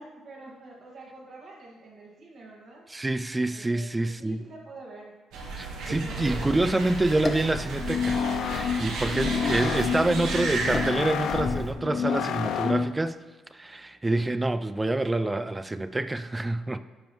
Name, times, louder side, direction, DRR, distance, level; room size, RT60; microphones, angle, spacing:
voice 1, 0.0-2.9 3.5-5.1 8.7-9.4, right 2 dB, 55° right, -3 dB, 1.9 m, -47 dB
voice 2, 2.9-4.4 5.6-13.2 13.5-16.8, right 2 dB, 15° right, 12 dB, 0.4 m, -27 dB
sound 1, 5.3-10.9, right 2 dB, 85° right, 1.4 m, -33 dB
sound 2, 6.2-11.7, left 2 dB, 30° left, 1.0 m, -37 dB
sound 3, 7.8-13.0, left 7 dB, 85° left, 0.4 m, -29 dB
10.5 x 5.3 x 3.1 m, 1.3 s
cardioid pair, 90°, 0 cm